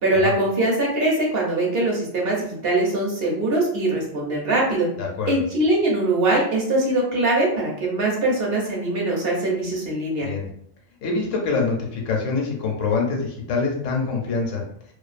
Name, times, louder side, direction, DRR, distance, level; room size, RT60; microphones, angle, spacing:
voice 1, 0.0-4.9 5.3-10.3, right 2 dB, 60° right, -3 dB, 0.8 m, -22 dB
voice 2, 5.0-5.4 10.2-10.4 11.0-14.6, left 4 dB, 75° left, 0 dB, 1.0 m, -25 dB
2.4 x 2.3 x 2.4 m, 0.70 s
omnidirectional pair, 1.3 m